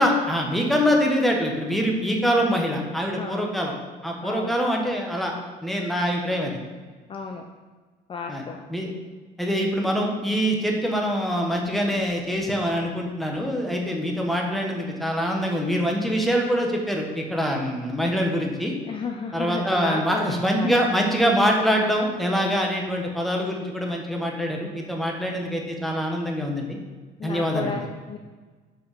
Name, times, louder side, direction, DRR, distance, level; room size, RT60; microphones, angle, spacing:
voice 1, 0.0-3.7 4.0-5.3 5.6-6.5 8.3-8.4 8.7-8.9 9.4-18.7 19.3-26.8 27.2-27.7, equal, ahead, 0 dB, 1.2 m, -24 dB
voice 2, 3.2-3.5 4.2-4.6 7.1-7.4 8.1-8.6 18.9-20.7 27.2-28.2, left 4 dB, 30° left, 3 dB, 0.5 m, -33 dB
5.0 x 4.9 x 5.2 m, 1.4 s
cardioid pair, 110°, 17 cm